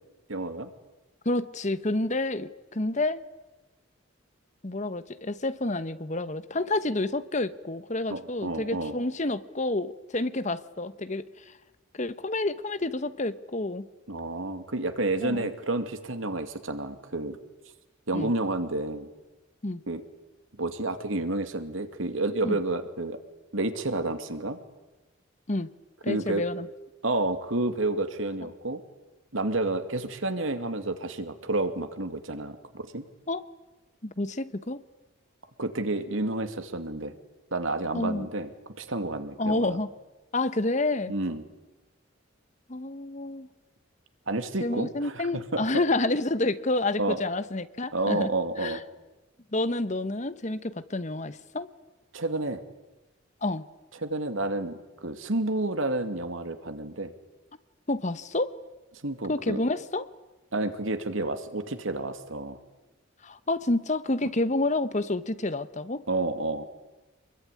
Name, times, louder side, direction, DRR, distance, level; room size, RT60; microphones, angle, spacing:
voice 1, 0.3-0.7 8.1-9.0 14.1-17.4 18.1-19.1 19.9-20.0 20.6-23.2 23.5-24.6 26.1-26.4 27.0-28.8 29.3-33.0 35.6-37.2 37.5-38.5 38.8-39.8 41.1-41.4 44.3-45.6 47.0-47.2 47.9-48.8 52.1-52.6 54.0-57.1 59.0-59.6 60.5-62.6 66.1-66.6, right 2 dB, 85° right, 8 dB, 2.5 m, -30 dB
voice 2, 1.2-3.2 4.6-11.5 11.9-13.9 15.2-15.5 18.1-18.3 19.6-19.8 22.4-22.6 25.5-25.7 26.0-26.7 33.3-33.4 34.0-34.8 37.9-38.3 39.4-39.9 40.3-41.1 42.7-43.5 44.6-48.3 48.6-48.8 49.5-51.7 53.4-53.6 57.9-58.5 59.3-60.1 63.2-66.0, left 2 dB, 35° left, 13 dB, 1.1 m, -29 dB
26.5 x 22.0 x 10.0 m, 1.1 s
head